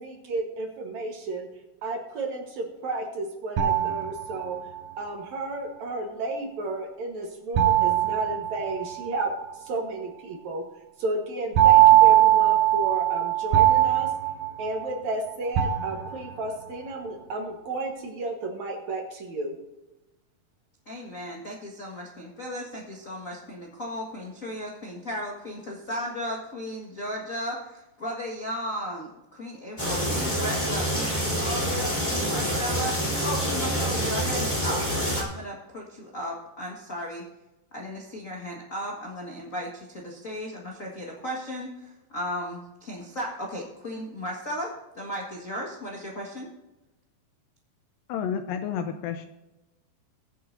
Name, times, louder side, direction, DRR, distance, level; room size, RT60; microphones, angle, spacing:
voice 1, 0.0-1.5 1.8-4.6 5.0-9.3 9.6-10.6 11.0-14.1 14.6-19.5, right 2 dB, 60° right, 2 dB, 2.3 m, -32 dB
sound 1, 3.6-4.8 7.6-9.2 11.6-15.1 15.6-16.5, right 13 dB, 80° right, 2.6 m, -20 dB
voice 2, 20.9-34.8 35.1-37.2 37.7-46.5, equal, 60° left, -2 dB, 0.8 m, -35 dB
sound 2, 29.8-35.2, equal, 15° left, 2.7 m, -27 dB
voice 3, 48.1-49.3, left 7 dB, 80° left, 8 dB, 2.1 m, -30 dB
22.0 x 7.8 x 2.7 m, 1.0 s
omnidirectional pair, 4.5 m